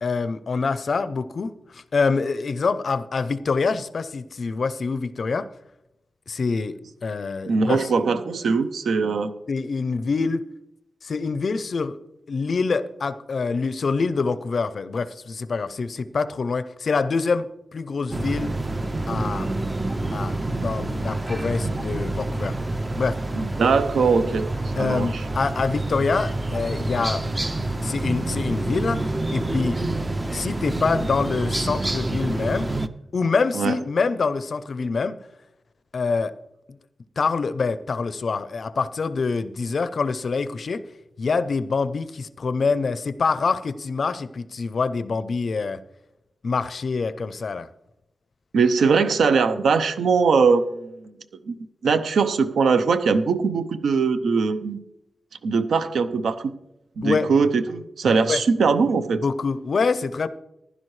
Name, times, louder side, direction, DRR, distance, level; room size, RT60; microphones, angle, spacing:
voice 1, 0.0-5.5 6.3-7.9 9.5-10.4 11.0-12.0 12.3-18.6 19.1-19.5 20.1-22.6 22.9-23.2 24.8-27.2 27.8-29.8 30.3-32.7 33.1-35.2 35.9-36.3 37.2-40.8 41.2-45.8 46.4-47.7 57.0-57.3 58.3-58.4 59.2-60.3, left 4 dB, 45° left, 14 dB, 0.5 m, -25 dB
voice 2, 7.4-9.3 23.4-24.5 24.8-25.2 33.5-33.7 48.5-51.1 51.5-51.6 51.8-54.8 55.4-56.5 57.0-59.2, right 5 dB, 80° right, 11 dB, 0.7 m, -21 dB
sound 1, 18.1-32.9, right 2 dB, 15° right, 0.4 m, -27 dB
15.0 x 11.0 x 3.2 m, 0.86 s
wide cardioid pair, 175°, 0 cm